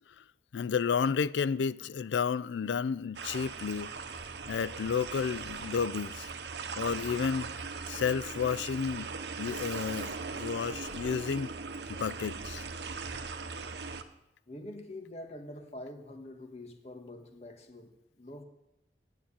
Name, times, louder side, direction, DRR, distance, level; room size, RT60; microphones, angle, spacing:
voice 1, 0.5-3.9 4.5-6.3 6.8-7.5 7.9-9.1 9.4-11.5 11.9-12.6, left 6 dB, 85° left, 0.4 m, -31 dB
sound 1, 3.2-14.0, right 4 dB, 75° right, 0.9 m, -39 dB
voice 2, 14.5-18.4, left 1 dB, 35° left, 1.7 m, -45 dB
9.5 x 7.5 x 8.6 m
head